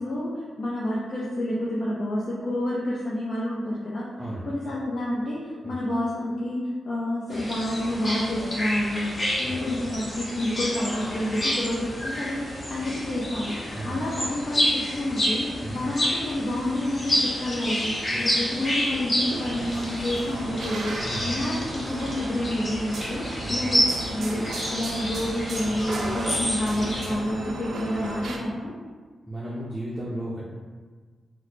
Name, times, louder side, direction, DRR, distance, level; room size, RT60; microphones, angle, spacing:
voice 1, 0.0-4.0 4.4-6.6 6.9-9.1 9.4-12.4 12.7-23.2 23.5-24.4 24.7-28.7, left 1 dB, 45° left, -6 dB, 0.5 m, -29 dB
voice 2, 4.2-4.5 5.6-5.8 9.4-9.6 13.7-14.1 15.6-15.8 18.1-18.5 21.0-21.3 23.4-23.6 29.3-30.4, right 1 dB, 10° right, -7 dB, 0.6 m, -35 dB
sound 1, 7.3-27.1, equal, 25° left, 0.8 m, -29 dB
sound 2, 19.2-28.4, right 2 dB, 70° right, 0.4 m, -36 dB
3.0 x 2.0 x 4.1 m, 1.5 s
wide cardioid pair, 130°, 0 cm